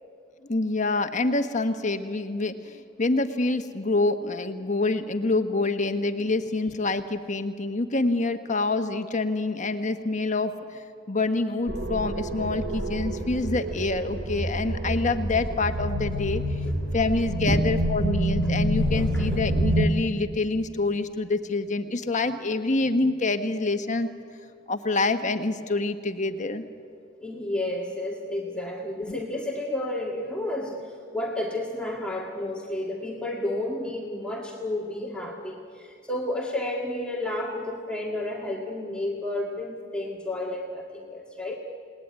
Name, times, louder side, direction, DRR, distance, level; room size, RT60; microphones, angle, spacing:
voice 1, 0.5-16.4 16.9-24.1 24.7-26.7 29.1-29.2, left 3 dB, 40° left, 8 dB, 1.4 m, -26 dB
sound 1, 11.7-19.9, right 1 dB, 60° right, 2.4 m, -27 dB
voice 2, 18.4-19.4 27.2-41.5, left 1 dB, 5° left, -2 dB, 1.9 m, -31 dB
29.0 x 19.5 x 9.7 m, 2.4 s
head